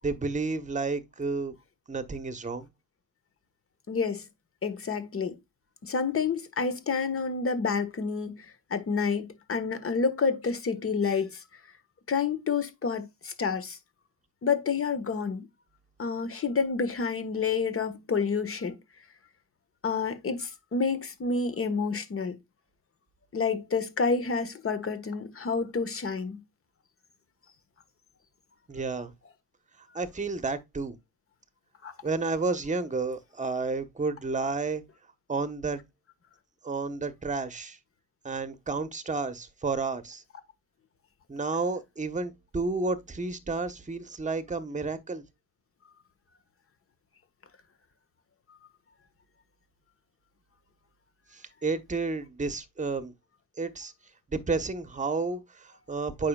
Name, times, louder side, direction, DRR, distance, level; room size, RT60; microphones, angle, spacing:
voice 1, 0.0-1.5 1.9-2.7 28.7-29.1 29.9-31.0 32.0-34.8 35.3-35.8 36.6-37.8 38.2-40.2 41.3-45.2 51.3-53.1 53.6-53.9 54.3-56.3, right 3 dB, 20° right, 1.2 m, -31 dB
voice 2, 3.9-4.3 4.6-5.4 5.8-11.4 12.1-13.8 14.4-15.5 16.0-18.8 19.8-22.4 23.3-26.4 31.8-31.9, left 5 dB, 35° left, 1.5 m, -29 dB
8.5 x 5.8 x 2.4 m
cardioid pair, 100°, 38 cm